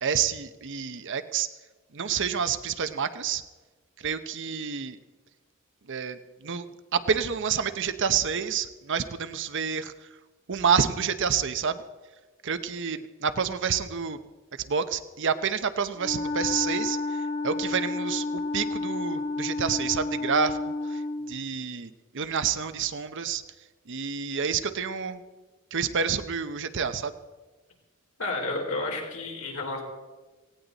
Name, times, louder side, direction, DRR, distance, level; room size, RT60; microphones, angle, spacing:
voice 1, 0.0-1.5 1.9-3.4 4.0-5.0 5.9-6.7 6.9-10.1 10.5-11.8 12.4-14.2 14.6-20.6 20.8-21.0 21.3-23.4 23.9-25.2 25.7-27.1, right 6 dB, 60° right, 11 dB, 0.8 m, -28 dB
Wind instrument woodwind instrument, 16.0-21.4, left 3 dB, 45° left, 1.7 m, -30 dB
voice 2, 28.2-29.8, left 2 dB, 75° left, 0 dB, 4.1 m, -31 dB
18.0 x 17.0 x 4.1 m, 1.2 s
head